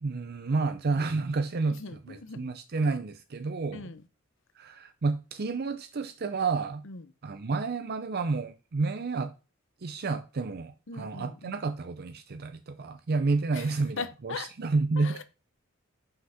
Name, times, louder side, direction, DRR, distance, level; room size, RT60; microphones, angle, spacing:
voice 1, 0.0-3.9 4.6-6.8 7.2-9.3 9.8-15.2, right 3 dB, 50° right, 0.6 m, -30 dB
voice 2, 1.8-2.5 3.7-4.0 6.8-7.0 10.9-11.6 13.6-13.7 14.0-14.5 15.0-15.2, left 4 dB, 65° left, 0.8 m, -39 dB
5.7 x 5.6 x 5.7 m
head